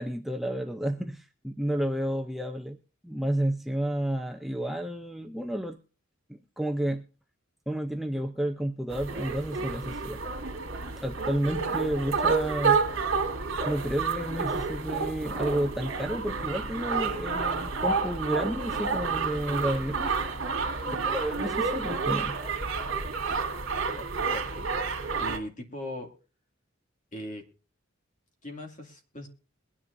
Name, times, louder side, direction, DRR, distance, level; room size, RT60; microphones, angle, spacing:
voice 1, 0.0-2.8 3.0-5.8 6.3-7.0 7.7-10.2 11.0-12.8 13.6-20.1 21.0-22.4, right 1 dB, ahead, 4 dB, 0.6 m, -31 dB
sound 1, 8.9-25.4, right 4 dB, 65° right, 2.4 m, -30 dB
voice 2, 20.8-21.1 23.9-24.6 25.2-26.1 27.1-27.4 28.4-29.3, left 1 dB, 40° left, 2 dB, 2.4 m, -40 dB
22.0 x 9.9 x 2.6 m, 0.37 s
head